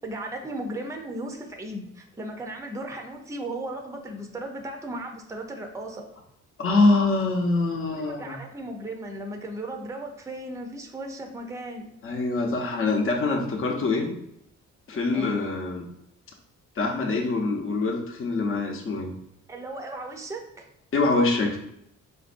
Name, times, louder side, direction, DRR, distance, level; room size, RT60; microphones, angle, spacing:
voice 1, 0.0-6.0 7.9-11.8 15.1-15.4 19.5-20.7, right 1 dB, 10° right, 2 dB, 0.5 m, -36 dB
voice 2, 6.6-8.4 12.0-14.1 14.9-15.8 16.8-19.1 20.9-21.6, left 3 dB, 45° left, 1 dB, 0.8 m, -24 dB
4.2 x 2.6 x 2.5 m, 0.78 s
cardioid pair, 90°, 30 cm